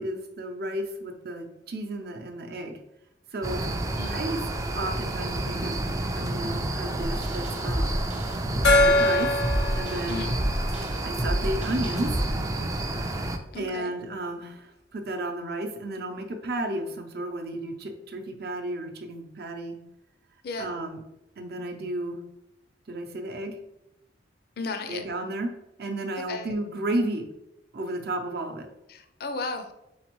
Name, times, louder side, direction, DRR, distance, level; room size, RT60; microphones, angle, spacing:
voice 1, 0.0-2.8 3.3-3.6 4.0-4.4 4.7-5.8 6.1-8.0 8.7-9.3 9.8-10.3 11.0-12.1 13.5-19.8 20.6-21.0 21.4-22.2 22.9-23.6 24.9-25.5 25.8-27.2 27.7-28.7, right 1 dB, 60° right, 4 dB, 0.6 m, -33 dB
sound 1, 3.4-13.4, right 1 dB, 20° right, 0.3 m, -30 dB
sound 2, 7.0-12.3, equal, 35° right, 1.0 m, -30 dB
Gong, 8.6-11.9, left 2 dB, 85° left, 0.8 m, -24 dB
voice 2, 13.5-13.9 20.4-20.7 24.6-25.0 26.3-26.5 28.9-29.7, left 3 dB, 55° left, 7 dB, 0.5 m, -34 dB
4.2 x 3.9 x 3.0 m, 0.89 s
head